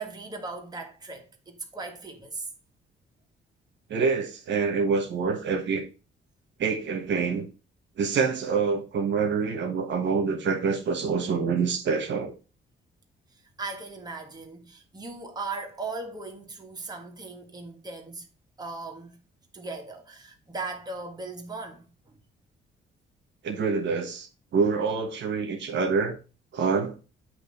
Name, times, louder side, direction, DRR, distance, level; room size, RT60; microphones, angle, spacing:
voice 1, 0.0-2.5 13.3-18.3 18.6-19.2 19.5-22.2, right 3 dB, 20° right, 1.5 m, -38 dB
voice 2, 3.9-5.8 6.6-7.5 8.0-12.3 23.4-26.2 26.5-26.9, right 5 dB, 65° right, 1.2 m, -26 dB
7.8 x 3.0 x 5.3 m
cardioid pair, 90°, 20 cm